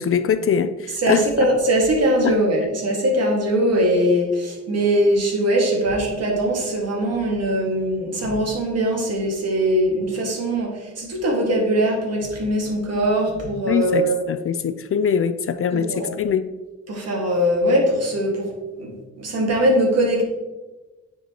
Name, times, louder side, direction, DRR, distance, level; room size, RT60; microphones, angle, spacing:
voice 1, 0.0-1.5 2.2-2.4 13.7-16.5, left 7 dB, 50° left, 11 dB, 0.4 m, -22 dB
voice 2, 1.0-14.2 15.7-16.1 16.9-18.5 18.8-20.2, right 1 dB, 55° right, 0 dB, 1.9 m, -21 dB
9.4 x 4.6 x 2.9 m, 1.1 s
cardioid pair, 100°, 30 cm